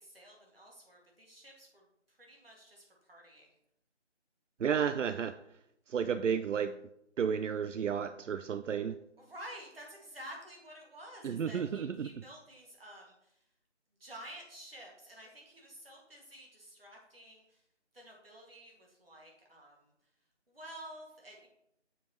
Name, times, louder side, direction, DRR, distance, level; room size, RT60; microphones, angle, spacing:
voice 1, 0.0-1.8 2.1-3.5 9.2-13.4 14.0-17.6 17.9-19.9 20.5-21.5, right 1 dB, 50° right, -1 dB, 2.0 m, -51 dB
voice 2, 4.6-5.3 5.9-6.7 7.2-9.0 11.2-12.1, right 7 dB, 90° right, 11 dB, 0.5 m, -32 dB
7.4 x 5.0 x 3.0 m, 0.79 s
figure-of-eight pair, 175°, 36 cm